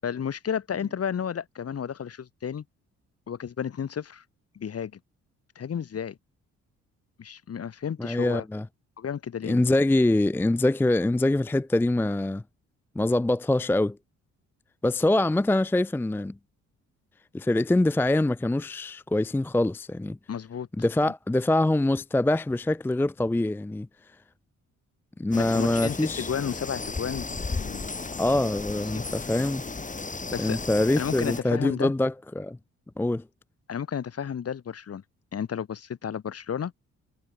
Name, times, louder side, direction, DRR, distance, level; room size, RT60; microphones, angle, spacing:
voice 1, 0.0-2.6 3.3-4.2 4.5-4.9 5.5-6.2 7.2-8.4 9.0-9.6 20.3-20.7 25.3-27.8 28.9-29.1 30.3-30.6 31.0-31.9 33.7-35.0 35.3-36.7, left 8 dB, 50° left, 6.4 m, -32 dB
voice 2, 8.0-8.7 9.4-12.4 13.0-14.0 14.8-16.3 17.3-20.2 20.8-23.9 25.2-26.3 28.2-29.6 30.4-32.6 33.0-33.2, left 1 dB, 5° left, 0.5 m, -24 dB
sound 1, 25.3-31.4, left 3 dB, 25° left, 6.7 m, -34 dB
cardioid pair, 90°, 30 cm